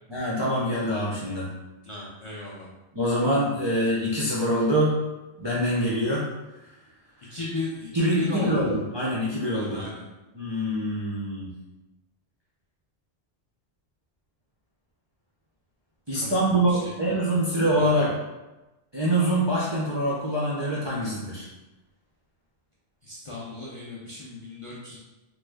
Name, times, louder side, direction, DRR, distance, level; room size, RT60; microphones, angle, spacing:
voice 1, 0.1-1.5 2.9-5.0 5.4-6.3 7.9-9.8 10.3-11.5 16.1-18.2 18.9-21.5, equal, 40° right, -7 dB, 0.4 m, -25 dB
voice 2, 1.8-2.7 7.3-7.9 8.1-8.5 9.5-10.0 16.2-16.4 16.7-16.9 17.8-17.9 23.0-25.0, left 3 dB, 45° left, -7 dB, 0.4 m, -35 dB
3.1 x 2.1 x 3.4 m, 1.1 s
omnidirectional pair, 1.1 m